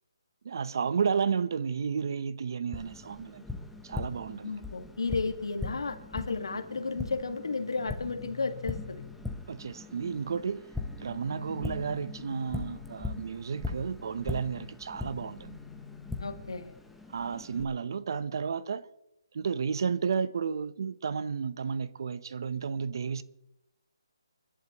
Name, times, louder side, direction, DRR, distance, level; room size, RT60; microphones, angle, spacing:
voice 1, 0.4-3.4 3.8-4.6 9.5-10.6 11.0-15.6 17.1-18.9 19.3-23.2, right 6 dB, 55° right, 0.8 m, -32 dB
Tap, 2.7-17.6, left 3 dB, ahead, 0.9 m, -40 dB
voice 2, 4.4-9.0 16.2-16.7, left 4 dB, 85° left, 1.8 m, -33 dB
sound 1, 7.5-9.5 11.2-13.2 15.0-16.9, left 8 dB, 40° left, 1.1 m, -49 dB
29.0 x 11.5 x 3.0 m
hypercardioid pair, 165°, 3 cm